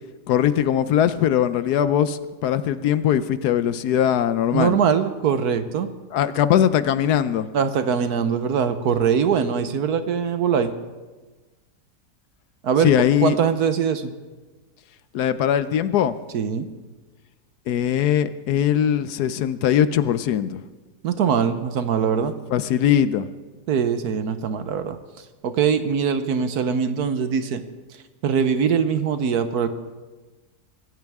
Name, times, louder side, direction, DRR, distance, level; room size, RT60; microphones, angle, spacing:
voice 1, 0.3-4.8 6.1-7.5 12.8-13.4 15.1-16.1 17.7-20.6 22.5-23.3, left 10 dB, 70° left, 13 dB, 1.1 m, -20 dB
voice 2, 4.5-5.9 7.5-10.7 12.6-12.9 13.2-14.1 16.3-16.7 21.0-22.3 23.7-25.0 25.4-27.6 28.2-29.7, right 7 dB, 65° right, 10 dB, 1.3 m, -22 dB
24.5 x 14.0 x 3.5 m, 1.2 s
omnidirectional pair, 1.8 m